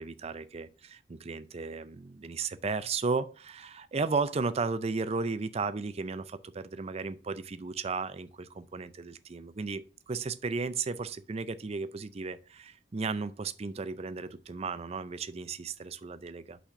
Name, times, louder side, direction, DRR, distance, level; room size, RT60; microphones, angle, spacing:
voice 1, 0.0-16.6, right 4 dB, 35° right, 0.5 m, -34 dB
5.8 x 4.2 x 5.7 m
head